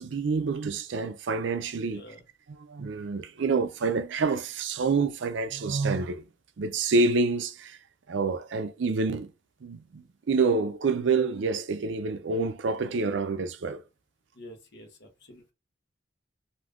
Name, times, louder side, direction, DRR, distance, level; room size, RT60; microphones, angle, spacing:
voice 1, 0.0-2.0 2.7-6.2 6.6-7.8 8.1-9.3 9.6-13.8, right 4 dB, 65° right, 0.4 m, -27 dB
voice 2, 1.8-2.2 14.3-15.5, left 1 dB, 55° left, 1.0 m, -48 dB
2.6 x 2.4 x 3.5 m
head